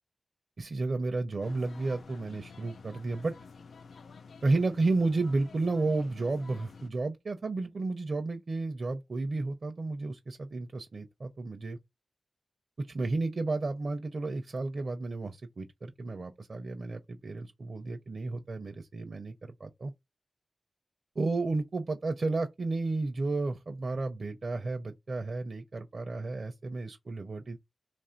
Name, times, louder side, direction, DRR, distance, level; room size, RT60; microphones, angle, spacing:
voice 1, 0.6-3.3 4.4-11.8 12.8-19.9 21.2-27.6, right 3 dB, 55° right, 0.6 m, -32 dB
sound 1, 1.4-6.9, left 5 dB, 85° left, 0.4 m, -50 dB
3.1 x 2.4 x 4.4 m
wide cardioid pair, 80°, 0 cm